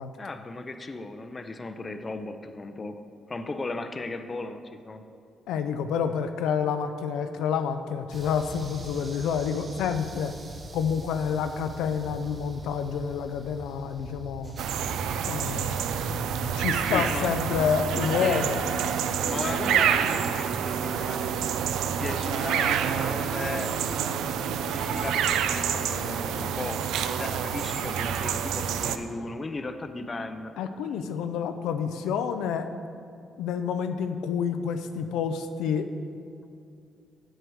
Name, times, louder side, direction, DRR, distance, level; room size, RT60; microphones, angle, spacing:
voice 1, 0.2-3.0 3.3-5.0 16.9-17.3 18.2-18.5 19.2-21.3 21.9-23.8 24.7-26.9 27.2-30.5, left 3 dB, 30° left, 9 dB, 0.5 m, -36 dB
voice 2, 5.5-10.3 10.7-14.6 15.2-15.9 16.5-18.6 30.6-32.7 33.4-35.9, left 7 dB, 90° left, 8 dB, 0.4 m, -28 dB
sound 1, 8.1-17.7, right 2 dB, 35° right, 0.7 m, -41 dB
sound 2, 14.6-29.0, right 8 dB, 85° right, 0.4 m, -28 dB
7.7 x 6.6 x 4.7 m, 2.4 s
cardioid pair, 90°, 0 cm